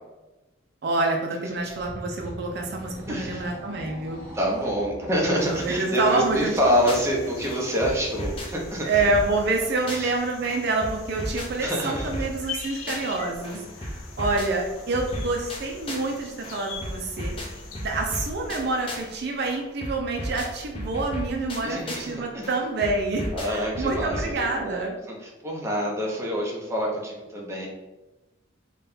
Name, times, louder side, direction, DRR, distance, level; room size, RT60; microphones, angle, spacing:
voice 1, 0.8-4.2 5.3-6.6 8.8-17.3 17.8-25.0, right 3 dB, 55° right, 2 dB, 0.4 m, -27 dB
sound 1, 1.5-7.7, equal, 10° left, 1.3 m, -41 dB
voice 2, 3.1-3.5 4.3-8.9 9.9-10.1 11.6-12.1 21.6-22.5 23.3-24.8 25.4-27.7, equal, 15° right, -2 dB, 0.6 m, -26 dB
sound 2, 5.4-19.6, left 4 dB, 90° left, 0.6 m, -43 dB
sound 3, 6.6-7.2 7.4-10.2 10.4-13.2 13.4-16.2 16.4-19.2 19.4-22.2 22.4-24.4, equal, 25° left, 0.5 m, -35 dB
4.1 x 2.2 x 3.4 m, 1.1 s
head